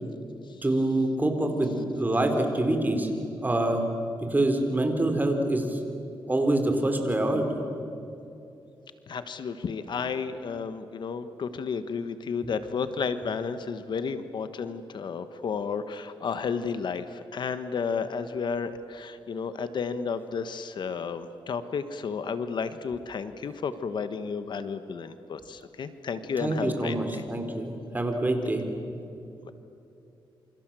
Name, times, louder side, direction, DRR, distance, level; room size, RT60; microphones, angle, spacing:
voice 1, 0.6-3.1 3.4-3.8 4.3-5.8 6.3-7.4 26.4-28.6, right 1 dB, 20° right, 4 dB, 4.4 m, -25 dB
voice 2, 9.1-27.2 29.4-29.5, left 5 dB, 65° left, 11 dB, 1.3 m, -32 dB
28.0 x 26.5 x 7.7 m, 2.7 s
cardioid pair, 95°, 8 cm